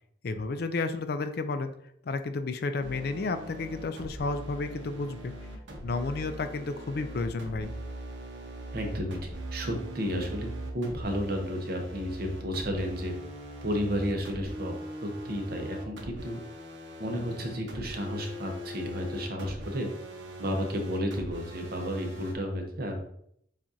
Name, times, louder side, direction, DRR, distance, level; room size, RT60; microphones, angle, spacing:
voice 1, 0.2-1.7 2.1-5.3 5.8-7.7, left 3 dB, 55° left, 9 dB, 0.4 m, -32 dB
sound 1, 2.8-22.3, equal, 80° right, 0.8 m, -41 dB
voice 2, 8.7-10.5 10.7-13.1 13.6-14.7 15.0-16.4 17.0-19.9 20.4-23.0, equal, 55° right, 3 dB, 0.8 m, -32 dB
7.3 x 2.5 x 2.7 m, 0.70 s
head